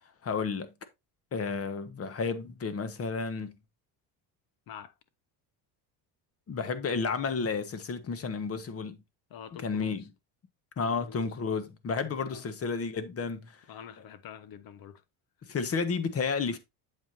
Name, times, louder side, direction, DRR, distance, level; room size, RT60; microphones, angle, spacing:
voice 1, 0.2-0.7 1.3-3.6 6.5-9.0 9.6-10.0 10.8-13.6 15.4-16.6, left 5 dB, 35° left, 1.4 m, -32 dB
voice 2, 9.3-10.1 10.8-11.2 12.2-12.5 13.7-15.0, left 8 dB, 55° left, 1.3 m, -46 dB
8.2 x 7.8 x 2.7 m
cardioid pair, 130°, 42 cm